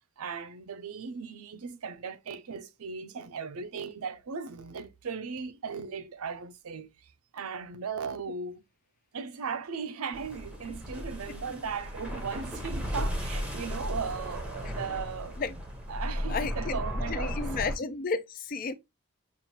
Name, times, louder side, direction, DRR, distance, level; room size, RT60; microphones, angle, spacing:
voice 1, 0.2-8.6 9.1-15.4 15.9-17.5, right 5 dB, 85° right, 0.5 m, -37 dB
sound 1, 10.1-17.8, equal, 5° right, 0.7 m, -35 dB
voice 2, 16.3-16.8 17.1-18.7, left 4 dB, 40° left, 0.3 m, -32 dB
5.4 x 2.5 x 2.8 m
head